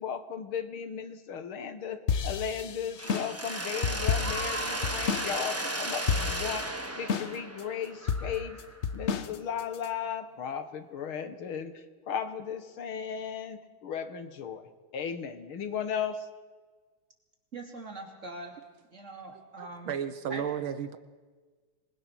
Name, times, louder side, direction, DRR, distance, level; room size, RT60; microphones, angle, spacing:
voice 1, 0.0-8.6 8.9-16.3, left 7 dB, 75° left, 9 dB, 2.3 m, -36 dB
sound 1, 2.1-5.3 5.6-5.7 6.1-6.6 7.1-7.6 8.1-9.9, left 6 dB, 60° left, 0.7 m, -30 dB
Mechanisms, 3.0-8.8, right 1 dB, 10° right, 1.1 m, -35 dB
voice 2, 17.5-18.6 18.9-20.0 20.3-20.4, right 2 dB, 35° right, 2 dB, 3.3 m, -42 dB
voice 3, 19.3-21.0, right 8 dB, 75° right, 11 dB, 1.8 m, -34 dB
26.5 x 20.5 x 6.2 m, 1.4 s
omnidirectional pair, 2.3 m